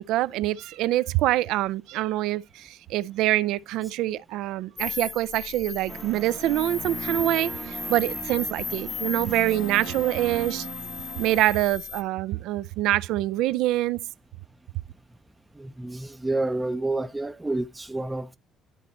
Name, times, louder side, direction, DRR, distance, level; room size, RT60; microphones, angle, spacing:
voice 1, 0.0-10.7 11.2-14.0, right 15 dB, 80° right, 0.3 m, -25 dB
sound 1, 4.8-12.0, left 5 dB, 40° left, 1.0 m, -36 dB
sound 2, 5.9-11.4, right 6 dB, 45° right, 0.8 m, -38 dB
voice 2, 15.6-18.4, right 2 dB, 15° right, 0.4 m, -29 dB
11.5 x 4.1 x 4.2 m
cardioid pair, 90°, 0 cm